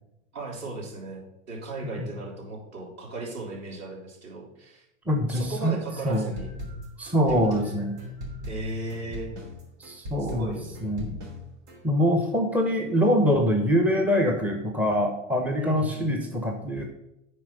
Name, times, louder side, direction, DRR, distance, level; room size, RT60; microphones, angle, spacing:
voice 1, 0.3-4.8 5.3-6.6 7.3-7.6 8.4-9.3 10.2-10.7 15.6-16.0, right 2 dB, 40° right, -3 dB, 3.3 m, -36 dB
voice 2, 5.1-6.3 7.0-8.0 9.8-10.6 10.8-11.2 11.8-16.9, equal, 5° right, 2 dB, 1.0 m, -24 dB
sound 1, 5.9-11.8, left 1 dB, 55° right, 3.2 m, -39 dB
8.8 x 4.8 x 5.3 m, 0.85 s
hypercardioid pair, 95°, 38 cm